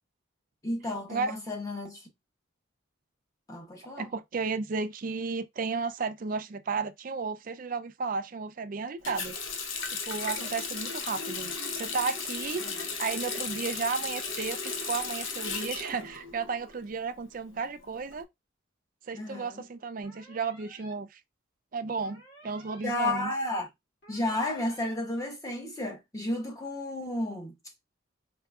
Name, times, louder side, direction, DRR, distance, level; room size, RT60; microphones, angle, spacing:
voice 1, 0.6-2.0 3.5-4.1 12.6-12.7 19.1-19.6 22.8-23.7 24.1-27.5, left 1 dB, 15° left, 1.0 m, -32 dB
voice 2, 4.0-9.3 10.1-12.6 13.0-18.2 19.1-21.2 21.7-23.3, right 4 dB, 45° right, 0.4 m, -33 dB
Water tap faucet, 9.0-16.8 17.1-18.1, left 4 dB, 75° left, 0.9 m, -35 dB
sound 1, 20.0-20.9 22.0-22.9 24.0-24.9, equal, 55° left, 2.4 m, -54 dB
4.7 x 3.3 x 2.3 m
head